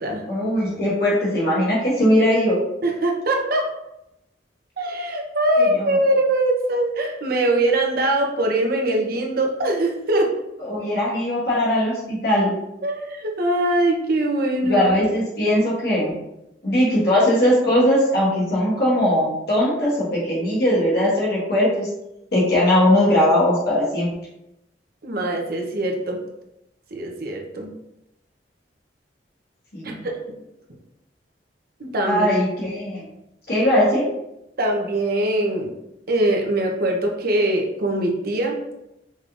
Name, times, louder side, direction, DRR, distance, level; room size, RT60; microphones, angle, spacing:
voice 1, 0.2-2.6 5.6-5.9 10.6-12.5 14.7-16.1 16.6-21.9 22.3-24.1 29.7-30.0 32.0-33.1 33.5-34.1, left 1 dB, 60° left, -6 dB, 1.5 m, -20 dB
voice 2, 2.8-3.7 4.8-10.3 12.8-14.8 25.0-26.2 26.9-27.7 29.8-30.2 31.8-32.3 34.6-35.7 36.1-38.6, right 1 dB, 55° right, 1 dB, 0.8 m, -22 dB
5.2 x 3.6 x 2.5 m, 0.85 s
head